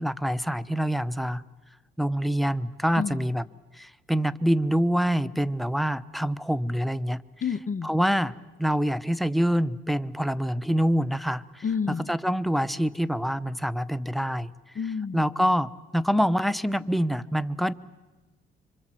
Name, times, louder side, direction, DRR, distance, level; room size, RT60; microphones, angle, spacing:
voice 1, 0.0-1.4 2.0-3.4 3.7-7.2 7.8-11.6 12.1-14.5 15.1-17.7, equal, ahead, 12 dB, 0.8 m, -26 dB
voice 2, 3.0-3.3 7.4-7.9 11.6-12.1 14.8-15.2, left 6 dB, 40° left, 14 dB, 0.8 m, -29 dB
26.0 x 25.0 x 7.6 m, 1.2 s
cardioid pair, 90°, 20 cm